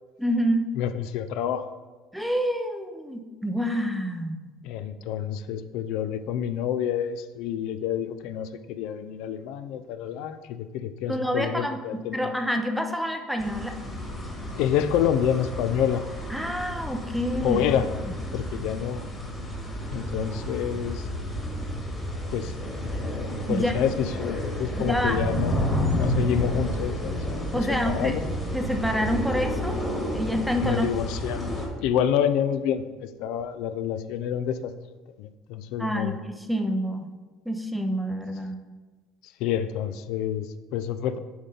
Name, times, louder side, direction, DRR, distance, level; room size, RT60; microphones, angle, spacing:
voice 1, 0.2-0.7 2.1-4.5 11.1-13.8 16.3-17.6 18.0-18.1 23.5-23.7 24.9-25.3 27.5-28.1 28.5-29.8 30.1-30.9 35.8-37.1 37.5-38.6, equal, ahead, 5 dB, 0.5 m, -27 dB
voice 2, 0.8-1.7 4.6-12.3 14.5-16.0 17.4-17.9 18.3-19.2 19.9-21.1 22.3-22.5 23.5-28.2 30.6-31.5 31.8-34.7 35.2-36.2 39.4-41.2, left 9 dB, 70° left, 11 dB, 0.4 m, -28 dB
sound 1, 13.4-31.7, equal, 15° left, 1.5 m, -31 dB
7.9 x 5.2 x 3.8 m, 1.3 s
cardioid pair, 145°, 0 cm